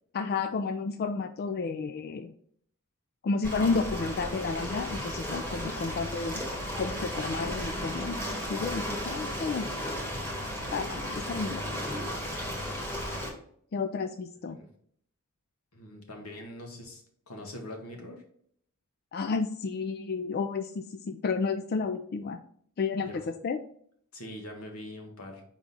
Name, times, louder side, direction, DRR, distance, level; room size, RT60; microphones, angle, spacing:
voice 1, 0.1-2.3 3.2-6.4 6.8-9.7 10.7-11.6 13.7-14.6 19.1-22.4 22.8-23.1 23.4-23.6, left 4 dB, 45° left, 8 dB, 0.3 m, -31 dB
Ocean, 3.4-13.3, equal, 10° left, 1.6 m, -34 dB
voice 2, 10.3-10.7 14.4-14.7 15.7-18.2 23.0-23.3 24.1-25.4, left 1 dB, 85° left, 2 dB, 1.6 m, -43 dB
4.7 x 3.9 x 5.5 m, 0.64 s
head